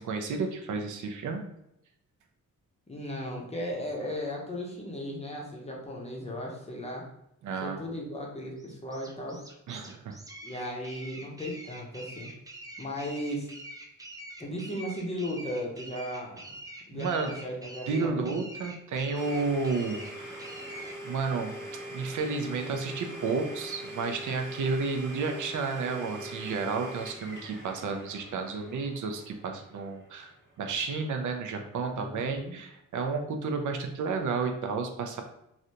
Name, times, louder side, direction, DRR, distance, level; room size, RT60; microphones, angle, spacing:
voice 1, 0.0-1.5 7.4-7.8 9.7-10.2 16.9-17.3 17.9-20.5 21.0-21.5 21.9-35.2, right 4 dB, 70° right, 4 dB, 0.5 m, -32 dB
voice 2, 2.9-7.0 7.6-9.4 10.4-12.3 12.8-13.5 14.4-16.6 16.9-18.3 31.9-32.6, equal, 20° left, -2 dB, 0.7 m, -36 dB
sound 1, 8.6-21.0, right 1 dB, 10° right, 0.4 m, -45 dB
Domestic sounds home sounds, 19.2-30.8, right 1 dB, 35° right, 1.0 m, -43 dB
3.2 x 2.5 x 2.7 m, 0.79 s
wide cardioid pair, 145°, 31 cm